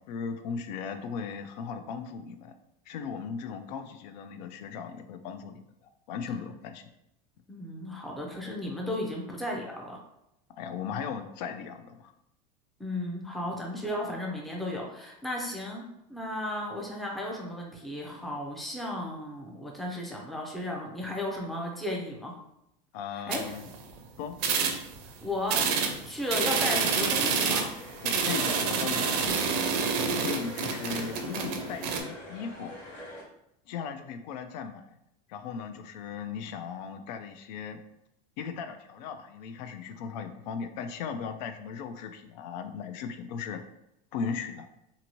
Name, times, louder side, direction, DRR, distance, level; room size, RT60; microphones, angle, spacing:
voice 1, 0.0-2.6 2.9-5.6 6.1-6.9 10.6-12.1 22.9-23.6 24.2-24.4 28.0-29.7 30.1-32.8 33.7-35.0 35.3-37.8 38.4-43.6 44.1-44.7, left 6 dB, 90° left, 8 dB, 0.4 m, -37 dB
voice 2, 7.5-10.0 12.8-15.8 16.1-22.3 23.1-23.5 25.0-25.6 26.0-27.7, left 1 dB, ahead, -2 dB, 0.4 m, -34 dB
sound 1, 23.3-24.0 24.4-25.1 25.5-32.0, right 5 dB, 55° right, 0.5 m, -28 dB
sound 2, 27.1-33.2, left 1 dB, 40° left, 1.1 m, -46 dB
2.7 x 2.6 x 2.9 m, 0.84 s
supercardioid pair, 155°, 21 cm